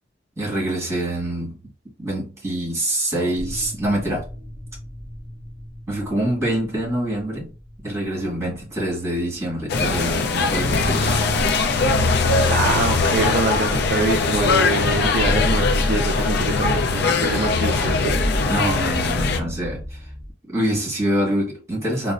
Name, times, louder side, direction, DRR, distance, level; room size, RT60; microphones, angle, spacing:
voice 1, 0.4-1.6 2.0-4.2 5.9-7.5 7.8-11.3 18.5-20.0 20.5-22.1, right 1 dB, 15° right, 1.7 m, -25 dB
sound 1, 3.3-15.3 15.6-15.7 17.7-20.3, equal, 10° left, 0.9 m, -36 dB
sound 2, 9.7-19.4, left 3 dB, 60° left, 0.4 m, -20 dB
voice 2, 12.1-18.1, right 3 dB, 55° right, 0.4 m, -25 dB
4.0 x 2.1 x 2.4 m
head